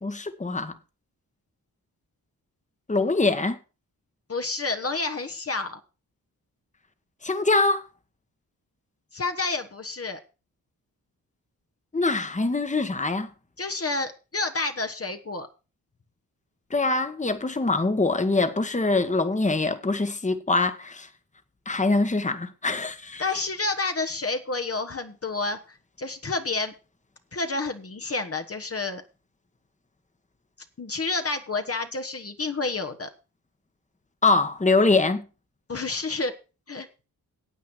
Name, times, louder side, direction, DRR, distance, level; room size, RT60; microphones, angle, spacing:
voice 1, 0.0-0.7 2.9-3.6 7.2-7.8 11.9-13.3 16.7-21.1 21.6-23.2 34.2-35.2, left 3 dB, 20° left, 1.4 m, -23 dB
voice 2, 4.3-5.8 9.1-10.2 13.6-15.5 23.2-26.7 27.3-29.0 30.8-33.1 35.7-36.3 36.7-36.9, left 3 dB, 40° left, 1.3 m, -29 dB
9.3 x 8.4 x 6.2 m
cardioid pair, 70°, 36 cm